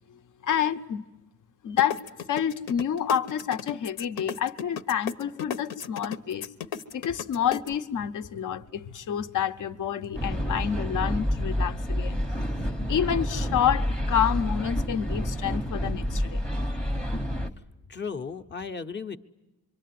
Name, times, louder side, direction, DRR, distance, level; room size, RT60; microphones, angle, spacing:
voice 1, 0.4-1.0 1.6-6.5 6.9-12.2 12.6-16.5, left 9 dB, 55° left, 1.0 m, -28 dB
sound 1, 1.8-7.7, left 8 dB, 80° left, 1.3 m, -34 dB
sound 2, 10.1-17.5, equal, ahead, 0.9 m, -29 dB
voice 2, 17.9-19.2, left 5 dB, 30° left, 0.9 m, -35 dB
26.0 x 24.5 x 9.4 m
wide cardioid pair, 175°, 36 cm